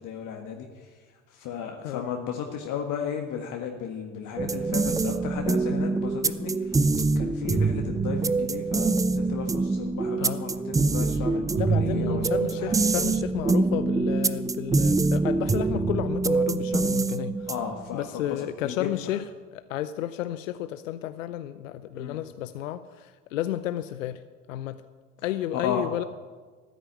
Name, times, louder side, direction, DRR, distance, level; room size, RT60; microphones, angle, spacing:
voice 1, 0.0-0.9 1.3-6.8 7.2-12.8 17.5-18.9 21.9-22.2 25.6-25.9, left 7 dB, 50° left, 3 dB, 1.7 m, -34 dB
sound 1, 4.4-17.8, right 3 dB, 10° right, 0.4 m, -25 dB
voice 2, 11.5-17.5 17.9-19.3 19.5-24.2 24.5-24.8 25.2-26.0, left 12 dB, 75° left, 13 dB, 0.7 m, -32 dB
13.5 x 10.0 x 8.9 m, 1.4 s
hypercardioid pair, 70°, 39 cm